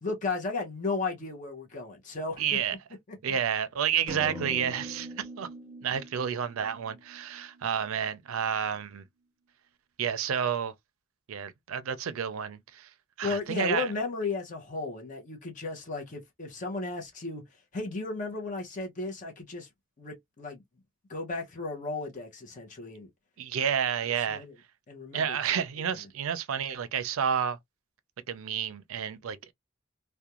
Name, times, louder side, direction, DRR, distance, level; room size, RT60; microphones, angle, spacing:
voice 1, 0.0-2.6 3.1-3.4 13.2-17.4 17.7-19.7 20.0-20.6 21.1-23.1 24.3-24.5 24.9-25.6, left 3 dB, 35° left, 0.6 m, -34 dB
voice 2, 2.4-2.8 3.2-5.5 5.8-9.0 10.0-10.7 11.3-12.9 13.2-13.9 23.4-24.4 25.1-27.6 28.3-29.5, right 8 dB, 75° right, 0.4 m, -30 dB
sound 1, 4.1-7.9, equal, 5° left, 1.1 m, -43 dB
2.4 x 2.2 x 2.8 m
head